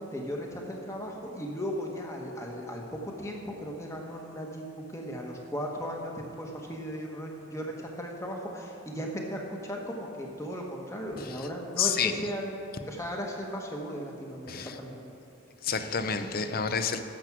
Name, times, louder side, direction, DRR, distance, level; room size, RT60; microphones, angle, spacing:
voice 1, 0.0-15.1, equal, 15° left, 0 dB, 1.2 m, -36 dB
voice 2, 11.2-11.5 11.8-12.1 14.5-14.8 15.6-17.0, left 6 dB, 45° left, 9 dB, 0.6 m, -29 dB
11.5 x 7.7 x 6.0 m, 2.7 s
head